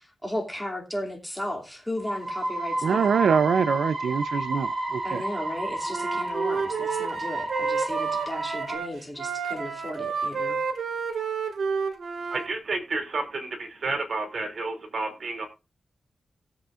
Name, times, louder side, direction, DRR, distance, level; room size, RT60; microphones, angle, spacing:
voice 1, 0.2-3.1 5.0-10.6, left 1 dB, 5° left, 2.6 m, -35 dB
sound 1, 2.0-8.7, right 1 dB, 35° right, 3.7 m, -31 dB
voice 2, 2.8-5.2, right 6 dB, 90° right, 0.5 m, -24 dB
Wind instrument woodwind instrument, 5.9-12.5, right 5 dB, 75° right, 2.1 m, -30 dB
voice 3, 12.3-15.5, right 3 dB, 55° right, 2.8 m, -31 dB
17.5 x 7.8 x 2.5 m
wide cardioid pair, 130°, 0 cm